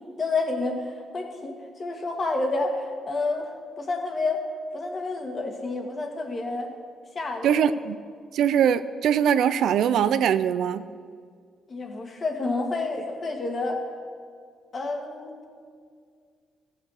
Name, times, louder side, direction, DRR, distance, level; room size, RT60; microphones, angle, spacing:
voice 1, 0.2-4.4 4.7-6.7 7.1-7.6 11.7-13.8 14.7-15.3, left 3 dB, 40° left, 3 dB, 1.8 m, -29 dB
voice 2, 7.4-8.0 8.3-10.9, right 8 dB, 75° right, 14 dB, 0.4 m, -22 dB
14.5 x 6.8 x 6.4 m, 2.1 s
cardioid pair, 90°, 0 cm